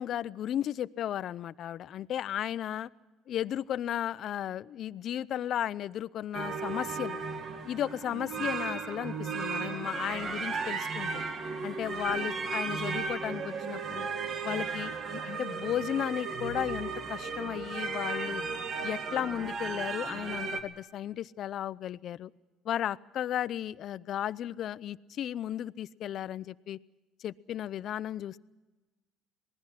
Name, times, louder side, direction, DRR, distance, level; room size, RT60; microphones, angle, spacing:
voice 1, 0.0-2.9 3.3-7.2 7.6-11.2 11.6-14.1 14.4-18.4 18.8-22.3 22.6-26.8 27.2-28.4, left 11 dB, 55° left, 18 dB, 0.6 m, -34 dB
sound 1, 6.3-20.6, right 4 dB, 45° right, 2.2 m, -35 dB
27.0 x 19.5 x 5.9 m, 1.2 s
cardioid pair, 105°, 0 cm